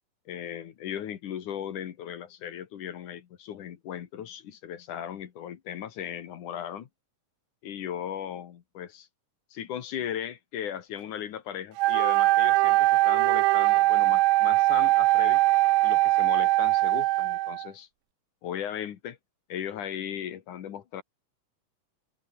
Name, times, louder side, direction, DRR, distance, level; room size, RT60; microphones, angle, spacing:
voice 1, 0.3-6.9 7.6-9.1 9.5-15.4 15.8-17.9 18.4-19.2 19.5-21.0, left 9 dB, 70° left, 3.1 m, -37 dB
Wind instrument woodwind instrument, 11.8-17.7, right 18 dB, 90° right, 1.6 m, -22 dB
omnidirectional pair, 3.8 m